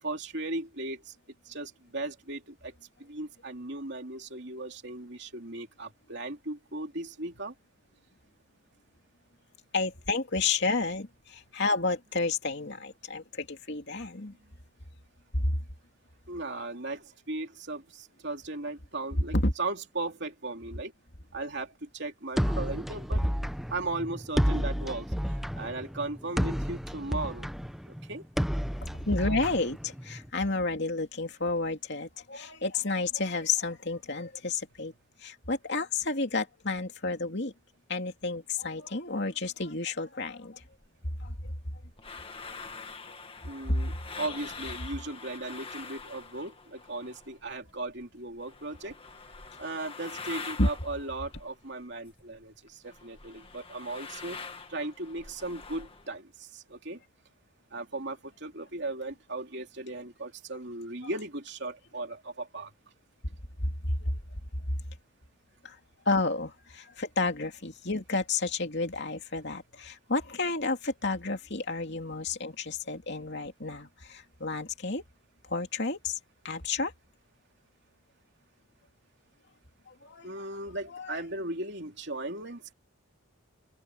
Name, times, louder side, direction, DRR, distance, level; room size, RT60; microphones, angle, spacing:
voice 1, 0.0-1.1 1.4-2.7 3.0-7.5 16.3-20.9 21.3-23.2 23.7-27.5 27.9-28.2 43.4-49.0 49.6-54.4 54.7-57.0 57.7-62.7 80.2-82.7, right 2 dB, 50° right, 3.2 m, -37 dB
voice 2, 9.7-14.4 15.3-15.5 19.3-19.5 29.1-34.9 35.2-37.5 37.9-40.6 41.2-41.5 43.7-43.8 50.6-50.7 63.6-64.2 64.7-64.8 65.6-65.8 66.0-75.0 75.4-76.2 76.4-76.9 79.9-80.3 80.9-81.2, left 3 dB, 50° left, 2.9 m, -31 dB
sound 1, 22.4-30.3, equal, ahead, 1.0 m, -31 dB
sound 2, 40.8-47.5 47.8-52.4 52.7-56.1, left 4 dB, 25° left, 1.8 m, -45 dB
open air
head